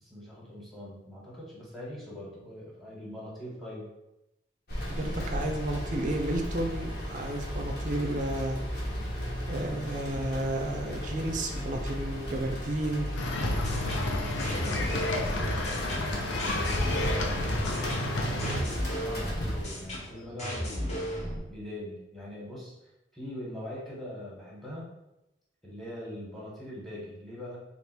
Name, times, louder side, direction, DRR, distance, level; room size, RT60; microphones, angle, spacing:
voice 1, 0.0-3.9 14.2-15.0 15.7-21.2 21.5-22.7 23.1-24.9 25.6-27.6, left 1 dB, ahead, -5 dB, 1.1 m, -42 dB
sound 1, 4.7-20.0, equal, 60° left, 1.1 m, -36 dB
voice 2, 4.9-8.6 9.5-13.1, right 1 dB, 45° right, 3 dB, 0.4 m, -32 dB
sound 2, 13.2-18.6, left 2 dB, 90° left, 0.6 m, -31 dB
sound 3, 13.4-21.4, equal, 40° left, 1.1 m, -34 dB
3.4 x 2.5 x 4.2 m, 0.92 s
head